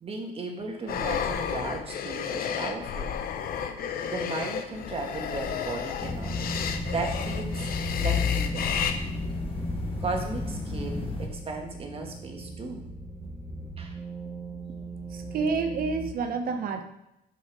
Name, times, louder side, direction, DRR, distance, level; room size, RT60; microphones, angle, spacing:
voice 1, 0.0-3.1 4.0-6.4 6.9-7.7 8.0-8.7 10.0-12.8 13.8-14.0 14.7-14.8, right 3 dB, 35° right, 3 dB, 1.7 m, -36 dB
sound 1, 0.9-8.9, left 8 dB, 60° left, 0.9 m, -31 dB
sound 2, 6.0-11.3, left 2 dB, 35° left, 1.8 m, -32 dB
sound 3, 9.6-16.1, right 3 dB, 5° right, 1.1 m, -40 dB
voice 2, 15.1-16.8, right 4 dB, 60° right, 7 dB, 1.0 m, -29 dB
7.5 x 6.1 x 4.8 m, 0.84 s
cardioid pair, 110°, 17 cm